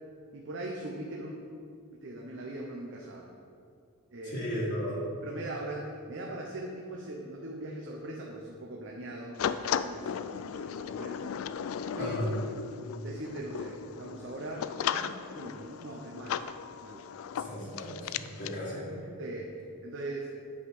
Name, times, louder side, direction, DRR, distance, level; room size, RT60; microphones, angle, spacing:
voice 1, 0.3-1.4 2.0-3.3 4.1-4.5 5.2-11.4 11.9-12.4 13.0-16.5 16.8-17.1 19.2-19.5 19.8-20.3, right 1 dB, 60° right, -1 dB, 0.8 m, -40 dB
voice 2, 4.3-5.0 12.0-12.3 17.3-19.1, left 1 dB, 55° left, -8 dB, 1.7 m, -35 dB
sound 1, 9.4-18.6, left 8 dB, 75° left, 0.3 m, -36 dB
8.7 x 5.4 x 4.9 m, 2.4 s
head